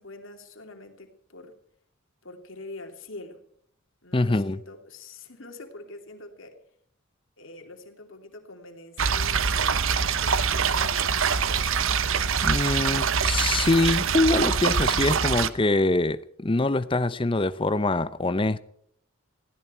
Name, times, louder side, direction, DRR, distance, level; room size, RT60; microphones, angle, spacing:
voice 1, 0.0-1.5 2.2-3.4 4.0-6.6 7.4-11.8, left 2 dB, 65° left, 2.9 m, -45 dB
voice 2, 4.1-4.6 12.4-18.6, left 2 dB, 25° left, 0.6 m, -24 dB
sound 1, 9.0-15.5, right 6 dB, 70° right, 0.9 m, -24 dB
20.0 x 16.0 x 4.5 m
head